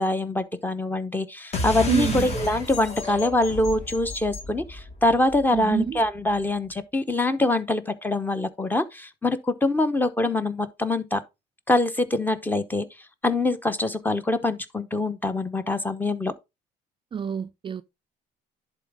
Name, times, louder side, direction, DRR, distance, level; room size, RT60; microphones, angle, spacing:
voice 1, 0.0-11.2 11.7-12.9 13.2-16.3, left 2 dB, 10° left, 0.8 m, -24 dB
sound 1, 1.5-6.4, left 2 dB, 40° left, 1.8 m, -33 dB
voice 2, 1.9-2.4 5.5-6.0 17.1-17.8, right 7 dB, 30° right, 0.4 m, -26 dB
11.0 x 4.0 x 3.5 m
cardioid pair, 110°, 17 cm